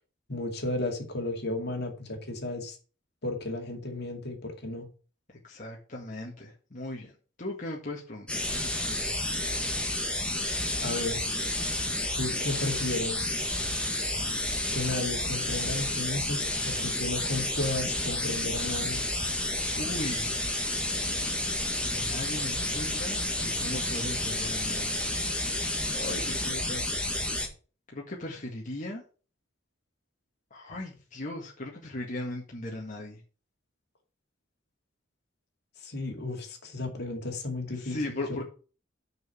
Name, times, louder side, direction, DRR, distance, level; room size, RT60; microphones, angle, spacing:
voice 1, 0.3-2.8 3.2-4.9 10.8-11.2 12.1-13.3 14.7-19.0 35.8-38.2, left 2 dB, 60° left, 2.4 m, -33 dB
voice 2, 5.4-7.1 7.4-9.1 19.8-20.3 21.8-25.0 25.9-26.8 27.9-29.0 30.5-33.2 37.8-38.4, left 1 dB, 40° left, 1.8 m, -38 dB
sound 1, 8.3-27.5, left 1 dB, 5° left, 1.7 m, -30 dB
6.7 x 6.2 x 7.0 m
head